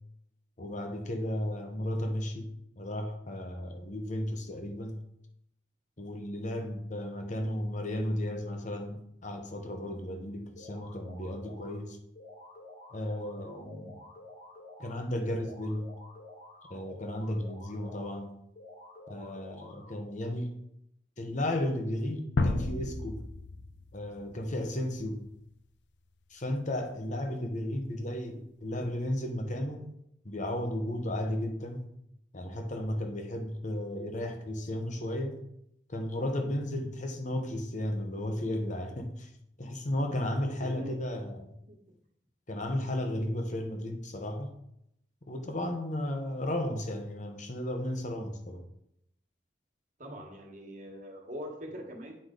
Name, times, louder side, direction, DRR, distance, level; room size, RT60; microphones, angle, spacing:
voice 1, 0.6-5.0 6.0-12.0 12.9-14.0 14.8-15.9 16.7-18.3 19.1-20.6 21.2-23.2 23.9-25.2 26.3-29.9 30.2-31.9 32.3-35.4 35.9-39.3 39.6-41.5 42.5-44.5 45.3-48.6, left 1 dB, 45° left, 5 dB, 1.1 m, -34 dB
sound 1, 10.6-11.8 12.2-15.0 15.4-18.2 18.6-20.1, left 1 dB, 60° left, 2.8 m, -50 dB
sound 2, 22.4-25.3, left 2 dB, 80° left, 0.6 m, -33 dB
voice 2, 40.6-40.9 41.6-41.8 50.0-52.2, equal, 45° right, 1 dB, 1.6 m, -42 dB
8.7 x 4.9 x 3.8 m, 0.77 s
head